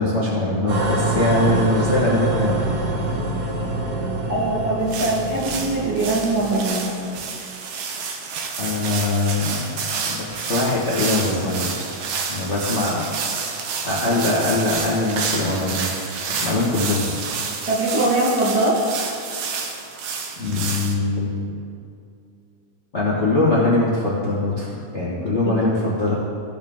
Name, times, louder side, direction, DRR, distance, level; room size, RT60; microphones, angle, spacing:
voice 1, 0.0-2.7 8.6-11.9 12.3-13.1 13.8-15.9 16.3-17.0 20.4-21.5 22.9-26.1, left 2 dB, 80° left, -7 dB, 0.6 m, -22 dB
sound 1, 0.7-6.7, right 2 dB, 90° right, 3.0 m, -25 dB
voice 2, 4.3-6.9 17.7-18.8, right 2 dB, 50° right, -7 dB, 1.1 m, -21 dB
sound 2, 4.9-20.9, right 5 dB, 70° right, 1.5 m, -29 dB
16.0 x 6.2 x 3.6 m, 2.5 s
omnidirectional pair, 3.7 m